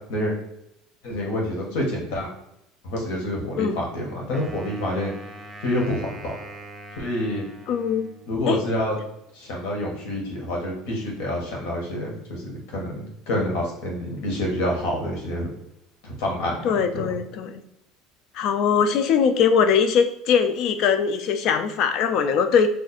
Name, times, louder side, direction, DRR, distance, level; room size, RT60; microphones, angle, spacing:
voice 1, 1.0-2.3 2.8-5.1 5.6-6.3 7.0-7.4 8.3-9.0 9.3-15.5 16.0-16.5 16.9-17.0, left 1 dB, 80° left, -1 dB, 1.2 m, -27 dB
Wind instrument woodwind instrument, 4.3-8.6, right 1 dB, 10° right, 0.4 m, -42 dB
voice 2, 7.7-8.1 8.5-8.6 16.6-17.6 18.4-22.7, left 6 dB, 55° left, 8 dB, 0.4 m, -21 dB
2.6 x 2.4 x 4.1 m, 0.80 s
cardioid pair, 135°, 0 cm